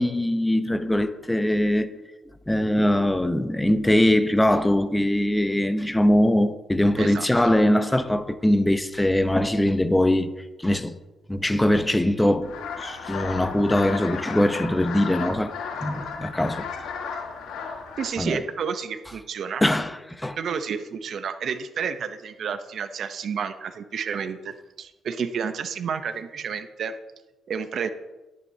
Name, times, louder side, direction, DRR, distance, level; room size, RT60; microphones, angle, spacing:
voice 1, 0.0-1.9 2.5-11.0 11.3-15.5 15.8-16.7 18.2-18.4 19.6-20.4, left 1 dB, 10° left, 0.7 m, -22 dB
sound 1, 12.4-18.1, left 5 dB, 85° left, 1.7 m, -34 dB
voice 2, 18.0-19.6 20.4-26.9 27.5-27.9, right 6 dB, 60° right, 0.7 m, -30 dB
11.5 x 10.5 x 2.8 m
cardioid pair, 90°, 0 cm